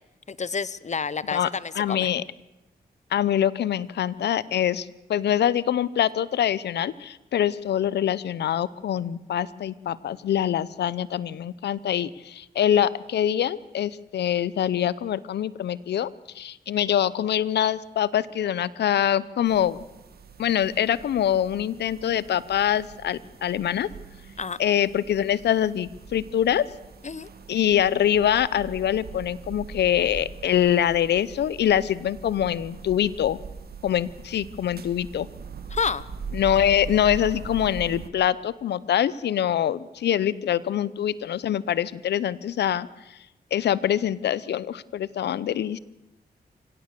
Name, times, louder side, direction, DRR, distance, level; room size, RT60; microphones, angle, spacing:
voice 1, 0.3-2.1 24.4-24.6 27.0-27.3 35.7-36.0, left 5 dB, 45° left, 19 dB, 0.9 m, -29 dB
voice 2, 1.7-2.2 3.1-16.1 16.3-19.8 20.4-23.9 24.6-26.6 27.5-33.4 33.8-35.3 36.3-42.9 43.5-45.8, left 10 dB, 90° left, 19 dB, 0.7 m, -24 dB
sound 1, 19.5-38.1, right 5 dB, 65° right, 1.7 m, -41 dB
24.5 x 17.0 x 6.8 m, 0.92 s
cardioid pair, 55°, 17 cm